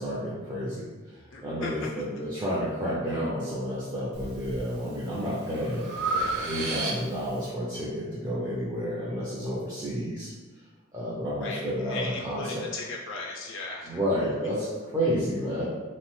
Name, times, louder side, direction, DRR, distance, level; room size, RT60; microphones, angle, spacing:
voice 1, 0.0-5.9 6.4-10.3 10.9-12.7 13.9-15.7, equal, 20° right, -8 dB, 0.4 m, -30 dB
voice 2, 1.3-1.7 11.4-14.0, left 3 dB, 60° left, -2 dB, 0.4 m, -37 dB
Breathing, 4.1-4.6 5.1-7.3, right 3 dB, 90° right, 0.5 m, -32 dB
2.9 x 2.0 x 3.0 m, 1.3 s
head